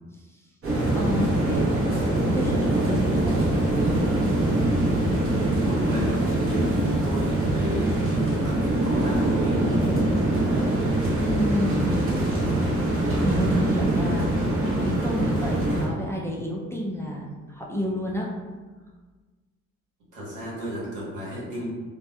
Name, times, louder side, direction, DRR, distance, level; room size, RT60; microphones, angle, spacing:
sound 1, 0.6-15.9, right 1 dB, 45° right, 0.8 m, -23 dB
voice 1, 1.0-2.1 2.3-3.2 11.2-12.0 13.1-18.3, equal, 10° left, -3 dB, 0.3 m, -29 dB
voice 2, 5.0-9.8 20.1-21.6, right 1 dB, 85° right, -6 dB, 1.1 m, -33 dB
2.7 x 2.1 x 2.3 m, 1.3 s
cardioid pair, 90°, 30 cm